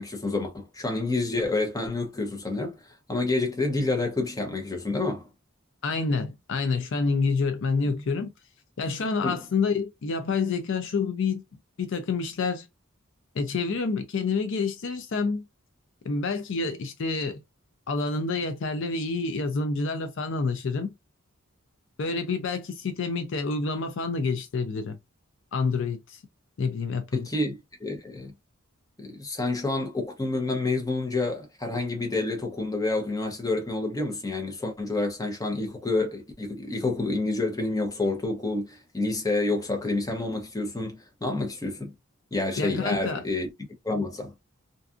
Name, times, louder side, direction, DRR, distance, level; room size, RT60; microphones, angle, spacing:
voice 1, 0.0-5.3 9.2-9.4 27.1-28.3 29.0-41.9 42.3-43.5 43.8-44.3, left 2 dB, 15° left, 0.7 m, -28 dB
voice 2, 5.8-8.3 8.8-11.4 11.8-12.7 13.3-15.4 16.0-17.4 17.9-20.9 22.0-25.0 25.5-26.2 26.6-27.3 42.6-43.2, left 4 dB, 60° left, 0.4 m, -28 dB
2.6 x 2.4 x 2.4 m
head